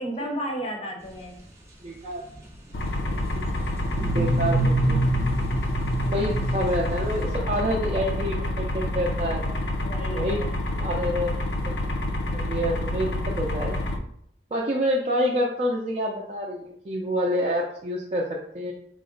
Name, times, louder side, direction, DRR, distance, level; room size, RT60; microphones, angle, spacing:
voice 1, 0.0-1.4 6.1-6.2 9.8-10.4, equal, 35° left, 1 dB, 0.6 m, -33 dB
sound 1, 1.0-7.3, equal, 15° right, 0.8 m, -39 dB
voice 2, 1.8-2.2 3.3-3.4 4.0-5.0 6.0-9.4 10.1-10.5 10.8-11.4 12.3-13.7 14.5-18.7, equal, 35° right, -3 dB, 0.4 m, -27 dB
sound 2, 2.7-14.0, left 1 dB, 80° left, 0.5 m, -28 dB
sound 3, 3.9-7.6, right 2 dB, 80° right, 0.6 m, -26 dB
3.6 x 2.1 x 3.7 m, 0.69 s
head